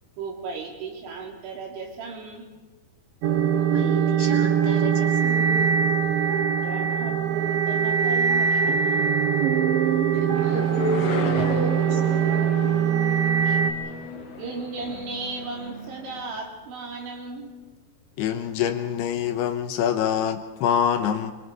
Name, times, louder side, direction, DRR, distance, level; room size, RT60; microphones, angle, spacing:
voice 1, 0.2-2.5 6.6-9.3 13.4-13.7 14.4-17.5, right 3 dB, 85° right, 0 dB, 5.4 m, -36 dB
sound 1, 3.2-13.7, right 7 dB, 70° right, 2.4 m, -22 dB
voice 2, 3.5-5.7 10.1-12.3, left 2 dB, 35° left, -2 dB, 3.3 m, -32 dB
sound 2, 10.3-16.2, left 4 dB, 50° left, 2.3 m, -34 dB
voice 3, 18.2-21.3, left 9 dB, 75° left, 7 dB, 2.8 m, -25 dB
25.5 x 24.5 x 4.8 m, 1.3 s
omnidirectional pair, 5.1 m